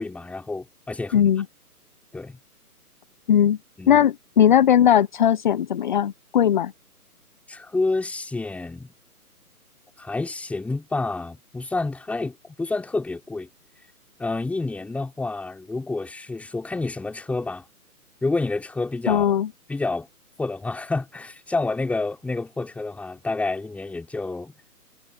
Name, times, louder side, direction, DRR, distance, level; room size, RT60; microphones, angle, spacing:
voice 1, 0.0-1.3 2.1-2.4 3.8-4.0 7.5-8.9 10.0-13.5 14.2-17.7 18.2-19.4 19.7-20.1 20.4-24.5, left 3 dB, 5° left, 3.9 m, -29 dB
voice 2, 1.1-1.4 3.3-3.6 3.9-6.7 19.1-19.5, left 9 dB, 30° left, 1.1 m, -18 dB
figure-of-eight pair, 145°, 46 cm